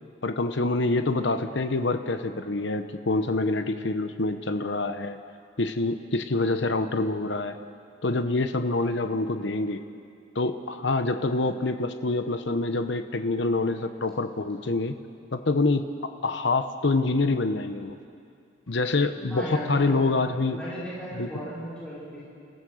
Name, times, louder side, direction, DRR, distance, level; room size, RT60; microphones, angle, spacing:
voice 1, 0.2-5.2 5.6-7.6 8.0-9.8 10.3-15.0 15.3-15.8 16.2-18.0 18.7-20.6 21.2-21.3, left 2 dB, 70° left, 9 dB, 0.9 m, -26 dB
voice 2, 19.3-20.0 20.5-22.2, equal, 5° left, -10 dB, 5.1 m, -36 dB
29.5 x 15.0 x 6.4 m, 2.4 s
head